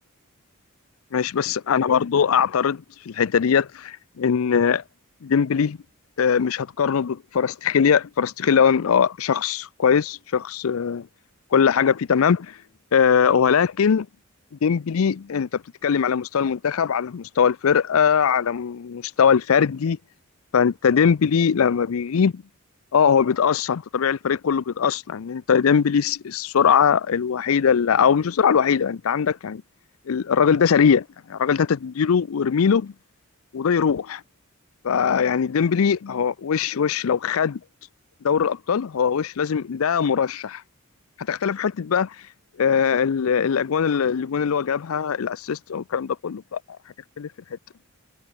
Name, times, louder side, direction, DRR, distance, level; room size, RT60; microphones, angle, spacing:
voice 1, 1.1-4.8 5.2-5.8 6.2-11.1 11.5-12.6 12.9-14.1 14.6-20.0 20.5-22.4 22.9-29.6 30.1-32.9 33.5-34.2 34.8-37.6 38.2-40.6 41.3-42.2 42.6-46.6 47.2-47.3, left 7 dB, 75° left, 0.5 m, -21 dB
head